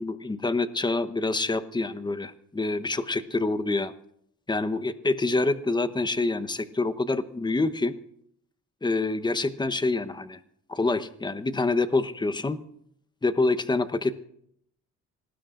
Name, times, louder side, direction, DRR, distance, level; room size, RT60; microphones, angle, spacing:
voice 1, 0.0-3.9 4.5-8.0 8.8-10.4 10.7-12.6 13.2-14.2, left 3 dB, 15° left, 12 dB, 1.0 m, -26 dB
26.5 x 19.0 x 2.6 m, 0.72 s
cardioid pair, 90°, 30 cm